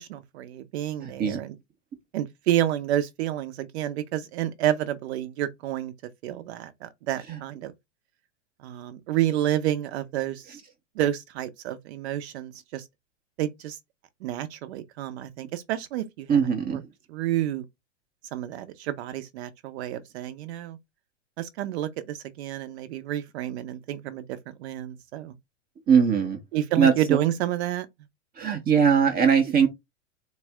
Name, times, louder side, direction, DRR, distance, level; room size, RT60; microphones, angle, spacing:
voice 1, 0.0-1.6 2.1-5.9 6.2-7.7 8.6-10.6 10.9-12.8 13.4-13.8 14.2-16.4 16.7-16.8 17.1-17.7 18.3-20.8 21.4-25.3 26.5-27.9, right 12 dB, 60° right, 0.9 m, -29 dB
voice 2, 1.0-1.4 7.3-7.4 16.3-16.8 25.9-26.4 26.8-26.9 28.4-29.7, right 6 dB, 25° right, 0.8 m, -20 dB
4.1 x 2.2 x 3.5 m
hypercardioid pair, 105°, 37 cm